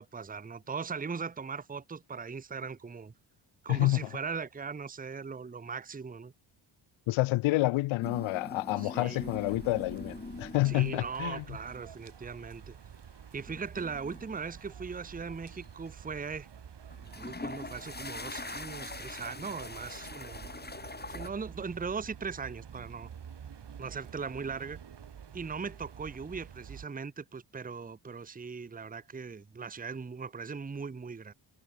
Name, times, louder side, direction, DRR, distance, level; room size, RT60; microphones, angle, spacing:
voice 1, 0.0-3.1 3.6-6.3 8.8-9.4 10.6-12.7 13.3-16.5 17.1-20.5 21.1-23.1 23.8-24.8 25.3-31.3, right 5 dB, 15° right, 0.9 m, -39 dB
voice 2, 3.7-4.1 7.1-11.4, left 19 dB, 70° left, 0.6 m, -28 dB
sound 1, 8.0-11.2 11.6-12.0 13.5-15.1 15.5-15.9 16.9-21.3, left 3 dB, 20° left, 3.0 m, -43 dB
sound 2, 9.1-26.9, right 8 dB, 55° right, 6.5 m, -49 dB
supercardioid pair, 70°, 50 cm